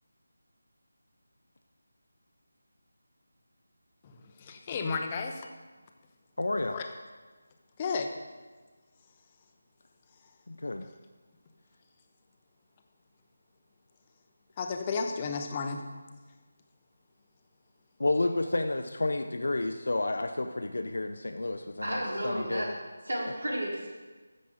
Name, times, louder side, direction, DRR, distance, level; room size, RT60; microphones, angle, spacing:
voice 1, 4.0-5.5 6.7-6.9 7.8-8.1 14.6-15.9, left 4 dB, 25° left, 4 dB, 0.8 m, -33 dB
voice 2, 6.4-6.8 10.5-10.9 18.0-22.7, left 2 dB, 65° left, 6 dB, 0.6 m, -30 dB
voice 3, 21.8-22.7 23.1-23.9, right 1 dB, 75° right, -4 dB, 3.8 m, -32 dB
13.0 x 7.7 x 3.8 m, 1.3 s
figure-of-eight pair, 160°, 0 cm